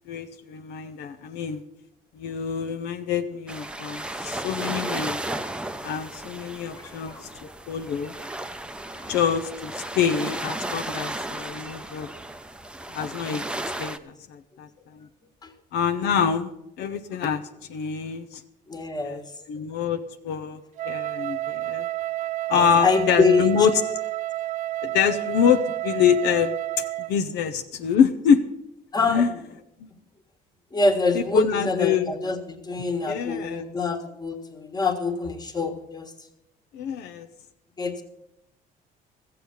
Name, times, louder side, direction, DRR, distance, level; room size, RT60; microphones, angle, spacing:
voice 1, 0.1-1.6 2.1-5.2 5.8-7.2 7.7-8.1 9.1-12.1 12.9-13.4 13.8-15.1 15.7-16.5 16.8-17.4 17.7-18.4 19.0-19.2 19.5-20.6 20.9-21.9 22.5-23.7 24.8-26.6 27.1-28.4 29.1-29.3 29.8-29.9 31.1-32.1 33.1-33.6 36.7-37.3, left 7 dB, 80° left, 7 dB, 0.8 m, -25 dB
sound 1, 3.5-14.0, right 1 dB, 5° right, 0.6 m, -34 dB
voice 2, 6.7-7.5 8.9-9.1 15.4-15.5 15.9-16.3 18.7-19.3 22.6-23.6 28.9-29.4 30.7-36.1 37.8-38.0, left 3 dB, 25° left, 6 dB, 1.6 m, -25 dB
Wind instrument woodwind instrument, 20.8-27.2, right 16 dB, 50° right, 0.4 m, -30 dB
14.0 x 7.7 x 7.0 m, 0.85 s
cardioid pair, 110°, 17 cm